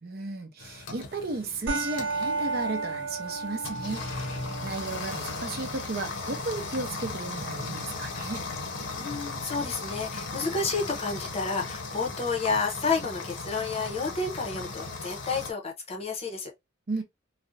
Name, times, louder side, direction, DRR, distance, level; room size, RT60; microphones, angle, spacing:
voice 1, 0.0-4.0 4.6-8.5 16.9-17.0, right 3 dB, 50° right, 0.6 m, -34 dB
sound 1, 0.6-15.5, left 3 dB, 70° left, 0.6 m, -37 dB
sound 2, 1.7-10.6, right 3 dB, 70° right, 0.9 m, -36 dB
voice 2, 9.0-16.5, left 4 dB, 30° left, 0.6 m, -30 dB
2.4 x 2.0 x 2.5 m
head